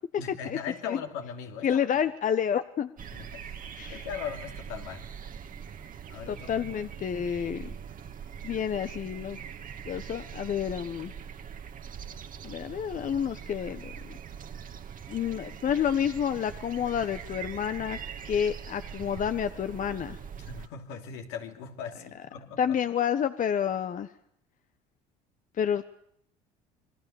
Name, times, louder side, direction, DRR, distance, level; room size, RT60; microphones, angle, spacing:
voice 1, 0.2-1.9 3.1-5.1 6.1-6.7 20.4-22.8, left 7 dB, 75° left, 4 dB, 3.0 m, -39 dB
voice 2, 1.6-2.9 3.8-4.0 6.3-7.7 8.4-9.4 9.8-11.1 12.4-14.1 15.1-18.0 18.2-20.2 22.6-24.1 25.6-25.9, left 8 dB, 45° left, 11 dB, 1.3 m, -29 dB
sound 1, 3.0-20.7, right 7 dB, 45° right, 2.0 m, -42 dB
27.0 x 23.0 x 7.1 m, 0.70 s
hypercardioid pair, 70°, 19 cm